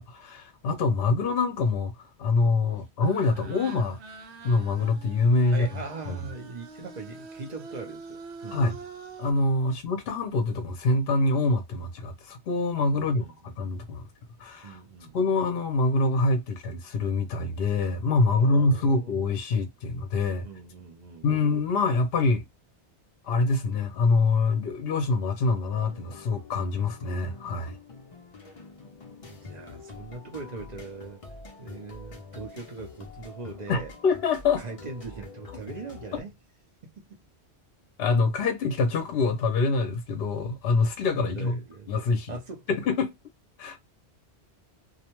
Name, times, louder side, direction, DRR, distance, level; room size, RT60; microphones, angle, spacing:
voice 1, 0.0-4.0 4.4-5.7 6.1-6.2 8.5-8.8 9.2-14.0 14.4-14.8 15.1-20.5 21.2-22.5 23.2-27.8 33.7-34.6 38.0-41.6 41.9-42.4 42.7-43.1 43.6-43.8, left 3 dB, 65° left, 0.8 m, -25 dB
sound 1, 3.0-9.3, right 4 dB, 75° right, 0.9 m, -45 dB
voice 2, 5.5-8.7 12.9-13.6 14.6-15.2 18.3-19.3 20.4-21.5 29.2-31.2 31.6-33.9 34.6-36.3 37.0-37.2 41.3-41.9 42.3-42.7, right 4 dB, 45° right, 0.7 m, -41 dB
sound 2, 25.6-36.2, left 4 dB, 45° left, 0.4 m, -46 dB
2.5 x 2.1 x 2.9 m
omnidirectional pair, 1.2 m